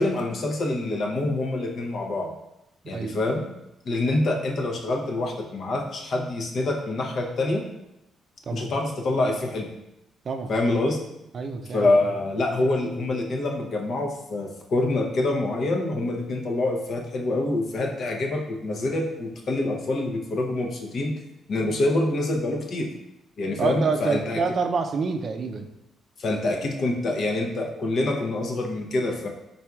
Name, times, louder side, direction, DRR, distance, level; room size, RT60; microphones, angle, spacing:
voice 1, 0.0-2.3 2.9-3.5 3.8-7.7 8.5-9.7 10.5-11.0 11.7-21.1 21.5-22.9 23.4-24.4 26.2-29.3, left 2 dB, 55° left, 1 dB, 0.7 m, -26 dB
voice 2, 2.8-3.2 8.5-8.7 10.2-10.5 11.3-11.9 23.6-25.7, right 5 dB, 50° right, 6 dB, 0.4 m, -27 dB
4.4 x 4.0 x 2.3 m, 0.88 s
cardioid pair, 90°, 0 cm